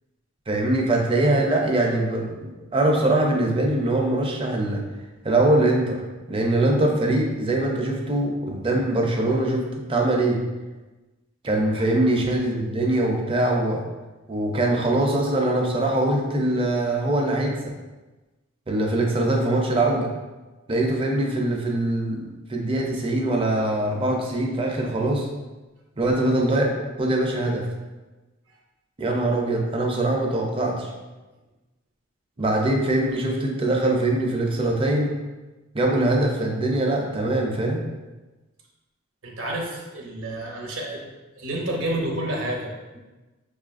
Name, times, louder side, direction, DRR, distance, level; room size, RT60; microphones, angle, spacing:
voice 1, 0.5-4.8 5.2-6.0 6.3-10.4 11.4-13.8 14.3-17.7 18.7-20.1 20.7-25.3 26.0-26.7 27.0-27.7 29.0-30.9 32.4-35.1 35.7-37.8, right 1 dB, 25° right, 0 dB, 0.5 m, -22 dB
voice 2, 39.2-41.1 41.4-43.0, right 1 dB, 65° right, -1 dB, 0.6 m, -30 dB
5.1 x 2.4 x 2.4 m, 1.2 s
head